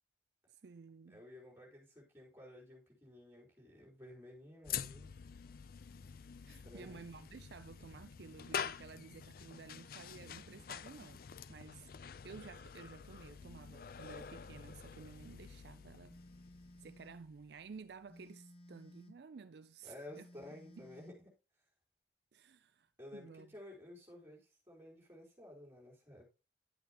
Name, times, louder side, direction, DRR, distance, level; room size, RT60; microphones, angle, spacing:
voice 1, 0.5-1.2 6.4-11.2 11.5-11.9 12.2-16.2 16.8-20.3 20.8-20.9 22.3-23.5, right 5 dB, 60° right, 0.4 m, -53 dB
voice 2, 1.1-5.2 6.6-7.0 19.8-21.3 23.0-26.3, left 1 dB, 15° right, 3.8 m, -54 dB
sound 1, 4.6-17.9, left 8 dB, 50° left, 0.4 m, -47 dB
Telephone, 16.1-17.2 18.1-19.2 20.1-21.2, equal, 30° left, 1.2 m, -58 dB
11.0 x 7.9 x 2.9 m
head